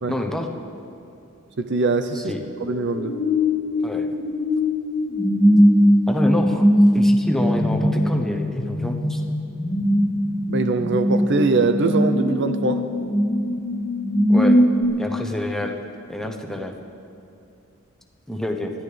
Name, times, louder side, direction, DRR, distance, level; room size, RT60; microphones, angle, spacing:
voice 1, 0.1-0.5 2.1-2.4 3.8-4.1 6.1-6.6 6.9-9.2 14.3-14.6 15.0-15.7 16.1-16.7 18.3-18.7, left 1 dB, ahead, 2 dB, 0.9 m, -27 dB
voice 2, 1.6-2.3 2.6-3.1 10.5-12.8, right 3 dB, 55° right, 9 dB, 0.6 m, -22 dB
sound 1, 2.6-14.8, equal, 25° left, 1.9 m, -20 dB
24.5 x 13.0 x 3.4 m, 2.6 s
head